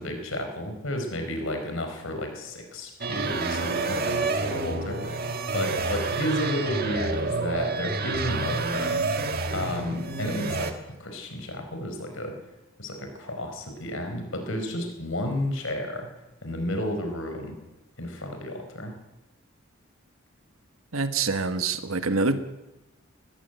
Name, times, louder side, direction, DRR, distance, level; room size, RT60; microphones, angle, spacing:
voice 1, 0.0-5.3 5.5-9.0 9.5-10.7 11.0-12.4 12.8-16.1 16.4-17.6 18.0-18.9, left 1 dB, 70° left, 5 dB, 4.5 m, -32 dB
sound 1, 3.0-10.7, right 3 dB, 45° right, 1.7 m, -28 dB
voice 2, 20.9-22.4, right 3 dB, 80° right, 10 dB, 1.4 m, -25 dB
20.0 x 15.0 x 9.1 m, 1.0 s
head